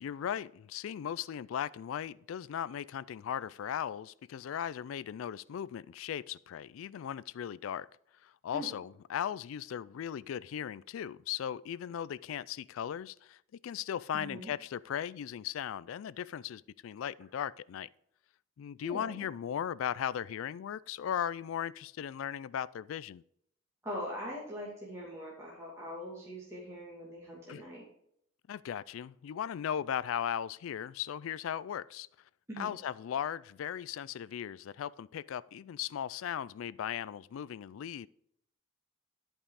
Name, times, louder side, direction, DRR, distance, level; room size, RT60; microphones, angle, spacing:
voice 1, 0.0-7.9 8.2-17.9 18.6-23.2 27.5-27.7 28.5-32.1 32.6-38.1, left 9 dB, 80° left, 0.3 m, -37 dB
voice 2, 14.1-14.5 18.8-19.1 23.8-27.8 32.5-32.7, equal, 15° right, 2.4 m, -42 dB
11.5 x 5.4 x 4.8 m
head